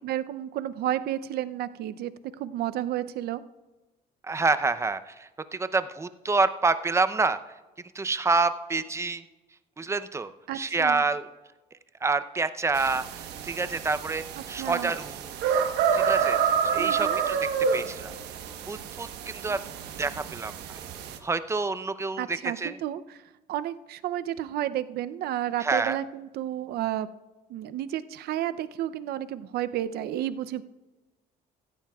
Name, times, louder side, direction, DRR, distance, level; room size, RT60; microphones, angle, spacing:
voice 1, 0.0-2.1 2.4-3.4 10.5-11.0 14.6-14.9 16.8-17.2 22.2-23.2 23.5-27.1 27.5-30.6, right 12 dB, 70° right, 13 dB, 0.5 m, -31 dB
voice 2, 4.2-7.5 7.9-9.2 9.8-11.3 12.0-15.3 15.9-18.2 18.7-19.6 20.0-20.8 21.2-22.8 25.6-26.0, right 3 dB, 15° right, 12 dB, 0.6 m, -28 dB
sound 1, 12.7-21.2, right 7 dB, 90° right, 1.1 m, -29 dB
16.5 x 14.5 x 2.3 m, 1.2 s
cardioid pair, 110°, 17 cm